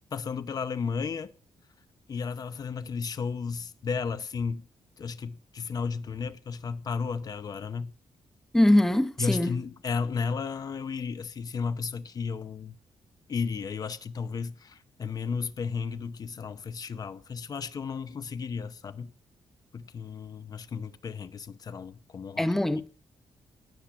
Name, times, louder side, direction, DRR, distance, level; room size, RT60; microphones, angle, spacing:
voice 1, 0.1-1.3 2.1-4.6 5.0-7.9 9.2-12.7 13.3-19.1 19.7-22.5 22.7-22.8, left 5 dB, 35° left, 0.7 m, -33 dB
voice 2, 8.5-9.5 22.4-22.9, left 1 dB, 5° left, 0.7 m, -22 dB
18.5 x 7.3 x 5.9 m
wide cardioid pair, 175°, 11 cm